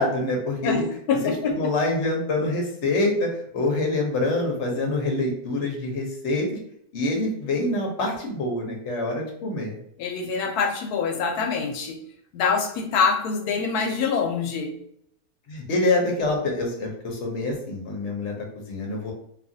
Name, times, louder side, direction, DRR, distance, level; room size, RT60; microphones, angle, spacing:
voice 1, 0.0-0.9 1.2-6.5 6.9-9.8 15.5-19.1, left 2 dB, 60° left, 0 dB, 0.9 m, -26 dB
voice 2, 0.6-1.7 10.0-12.0 12.3-14.7, left 5 dB, 85° left, 4 dB, 1.1 m, -25 dB
2.8 x 2.3 x 2.6 m, 0.70 s
omnidirectional pair, 1.6 m